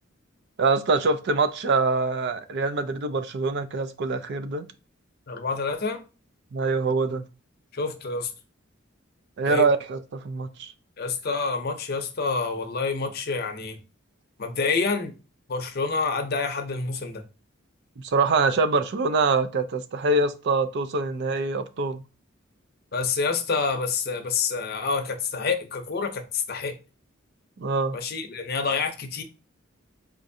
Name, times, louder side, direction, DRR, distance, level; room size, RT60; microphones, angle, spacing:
voice 1, 0.6-4.7 6.5-7.2 9.4-10.7 18.0-22.0 27.6-28.0, right 3 dB, 55° right, 0.4 m, -24 dB
voice 2, 5.3-6.0 7.7-8.3 9.4-9.7 11.0-13.8 14.4-15.1 15.5-17.2 22.9-26.7 27.9-29.2, left 4 dB, 50° left, 0.6 m, -27 dB
4.3 x 2.5 x 2.6 m
head